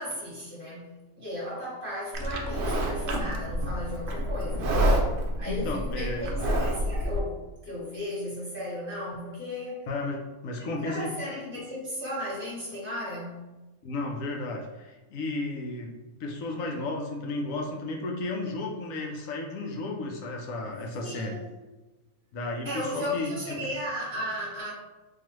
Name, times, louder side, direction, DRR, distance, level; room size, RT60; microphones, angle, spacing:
voice 1, 0.0-4.8 5.4-9.9 10.7-13.4 21.0-21.5 22.6-24.7, left 1 dB, 10° right, -8 dB, 1.2 m, -35 dB
Livestock farm animals working animals, 2.1-7.2, right 1 dB, 75° right, 0.5 m, -28 dB
voice 2, 5.5-6.3 9.9-11.4 13.8-15.9 16.2-21.4 22.3-23.6, left 2 dB, 70° left, 0 dB, 1.0 m, -33 dB
3.9 x 2.7 x 3.0 m, 1.1 s
omnidirectional pair, 1.5 m